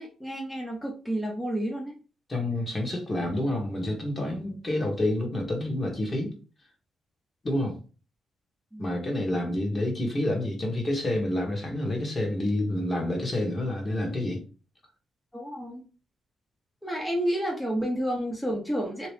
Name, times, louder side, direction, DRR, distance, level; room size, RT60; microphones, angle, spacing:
voice 1, 0.0-2.0 8.7-8.9 15.3-15.8 16.8-19.1, equal, 5° left, 0.8 m, -30 dB
voice 2, 2.3-6.3 7.4-7.8 8.8-14.4, left 1 dB, 35° left, 1.3 m, -28 dB
2.9 x 2.5 x 3.2 m
cardioid pair, 70°, 0 cm